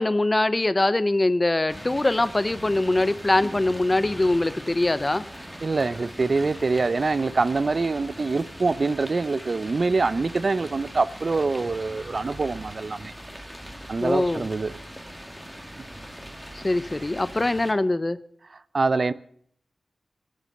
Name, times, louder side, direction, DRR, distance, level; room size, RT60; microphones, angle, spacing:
voice 1, 0.0-5.2 14.0-14.4 16.5-18.2, left 2 dB, 25° left, 16 dB, 0.6 m, -23 dB
sound 1, 1.7-17.7, equal, 5° right, 1.7 m, -41 dB
voice 2, 5.6-13.1 13.9-14.7 15.8-15.9 18.7-19.1, right 3 dB, 50° right, 16 dB, 0.5 m, -25 dB
16.0 x 6.5 x 7.7 m, 0.65 s
wide cardioid pair, 85°, 0 cm